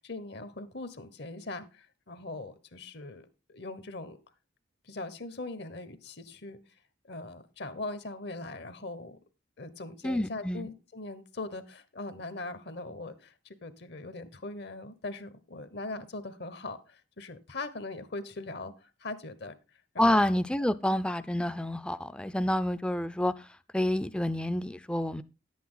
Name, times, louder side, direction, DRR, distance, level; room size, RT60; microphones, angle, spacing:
voice 1, 0.0-4.2 4.8-6.6 7.1-9.2 9.6-13.3 13.6-19.5 19.9-20.2, left 2 dB, 60° left, 1.1 m, -40 dB
voice 2, 10.0-10.7 20.0-25.2, left 1 dB, 5° left, 0.4 m, -28 dB
11.0 x 8.5 x 3.9 m
head